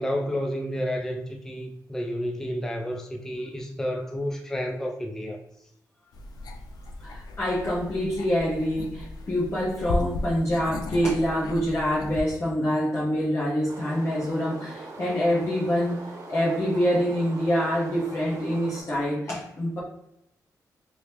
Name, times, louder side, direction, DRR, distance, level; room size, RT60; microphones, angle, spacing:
voice 1, 0.0-5.4, equal, 5° left, 0.3 m, -30 dB
sound 1, 6.1-12.2, left 2 dB, 85° left, 0.4 m, -35 dB
voice 2, 7.0-19.8, equal, 40° left, 1.0 m, -26 dB
sound 2, 13.7-18.8, right 2 dB, 50° right, 1.0 m, -42 dB
2.9 x 2.8 x 3.3 m
cardioid pair, 105°, 7 cm